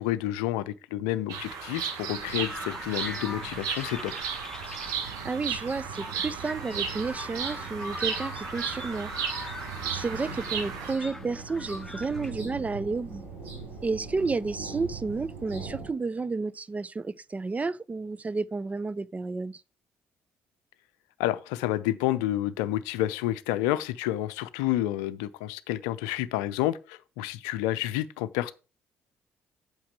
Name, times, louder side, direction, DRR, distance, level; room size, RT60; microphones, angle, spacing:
voice 1, 0.0-4.1 21.2-28.5, left 14 dB, 65° left, 0.5 m, -29 dB
Bird vocalization bird call bird song, 1.3-10.9, right 7 dB, 60° right, 1.4 m, -35 dB
sound 1, 2.0-15.9, right 5 dB, 75° right, 3.5 m, -42 dB
sound 2, 2.3-12.3, left 1 dB, 5° left, 1.2 m, -42 dB
voice 2, 4.9-9.1 9.9-13.2 13.8-19.6, right 4 dB, 20° right, 0.4 m, -31 dB
8.6 x 6.0 x 4.7 m
figure-of-eight pair, 45°, 7 cm